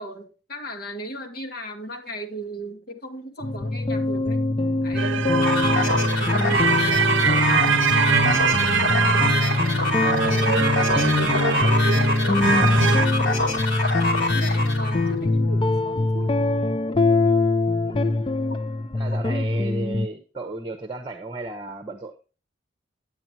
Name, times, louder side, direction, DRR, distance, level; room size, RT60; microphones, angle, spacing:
voice 1, 0.0-4.5 4.8-6.0 6.3-9.6 10.2-11.8 12.2-13.6 14.0-16.3 18.5-18.6, right 1 dB, 55° left, 4 dB, 1.8 m, -37 dB
sound 1, 3.4-20.1, left 2 dB, 25° left, 0.5 m, -23 dB
sound 2, 5.0-13.1, right 7 dB, 90° right, 0.6 m, -24 dB
sound 3, 5.4-15.1, left 2 dB, 75° left, 2.8 m, -26 dB
voice 2, 17.8-18.2 18.9-22.1, right 2 dB, 25° right, 8 dB, 1.0 m, -34 dB
9.8 x 9.0 x 2.7 m, 0.33 s
head